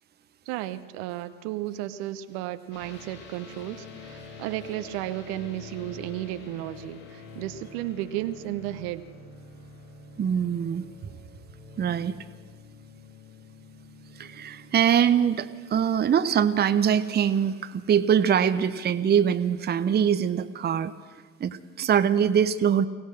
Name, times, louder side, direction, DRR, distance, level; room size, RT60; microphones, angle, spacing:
voice 1, 0.5-9.1, right 14 dB, 60° right, 12 dB, 1.0 m, -33 dB
sound 1, 2.7-16.9, left 4 dB, 55° left, 7.3 m, -47 dB
voice 2, 10.2-10.9 11.8-12.1 14.2-20.9 21.4-22.9, right 8 dB, 25° right, 12 dB, 0.8 m, -23 dB
23.5 x 17.0 x 6.5 m, 1.5 s
figure-of-eight pair, 65°, 38 cm